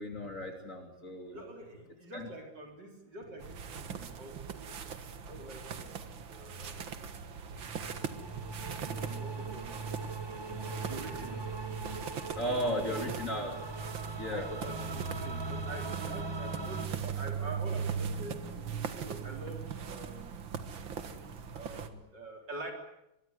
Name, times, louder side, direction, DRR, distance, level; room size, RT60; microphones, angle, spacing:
voice 1, 0.0-1.4 2.1-2.3 12.4-13.5 14.2-14.5, equal, 40° left, 4 dB, 3.4 m, -35 dB
voice 2, 1.3-4.8 5.3-6.9 8.1-10.1 10.6-11.6 12.4-13.6 14.3-18.4 18.9-20.4 21.1-22.7, right 2 dB, 65° right, 3 dB, 4.7 m, -46 dB
sound 1, 3.4-21.9, right 6 dB, 85° right, 2.5 m, -40 dB
sound 2, 7.5-16.9, right 3 dB, 25° right, 0.6 m, -41 dB
23.5 x 23.0 x 9.7 m, 0.88 s
omnidirectional pair, 2.1 m